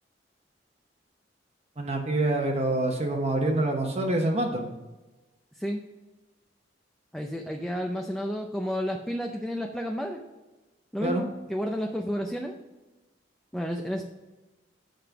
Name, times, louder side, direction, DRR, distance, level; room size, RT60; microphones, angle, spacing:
voice 1, 1.8-4.7 11.0-11.2, right 2 dB, 35° right, 2 dB, 0.9 m, -26 dB
voice 2, 7.1-10.2 10.9-12.6 13.5-14.0, equal, ahead, 2 dB, 0.5 m, -31 dB
7.9 x 5.1 x 5.8 m, 1.1 s
head